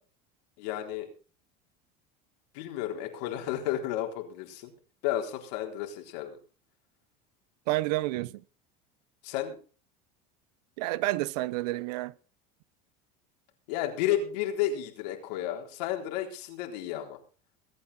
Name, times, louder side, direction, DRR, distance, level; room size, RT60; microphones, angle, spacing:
voice 1, 0.6-1.1 2.5-4.7 5.0-6.4 9.2-9.6 13.7-17.2, left 11 dB, 80° left, 4.0 m, -32 dB
voice 2, 7.7-8.3 10.8-12.1, right 18 dB, 80° right, 0.9 m, -29 dB
23.0 x 9.0 x 4.3 m
supercardioid pair, 100°, 20 cm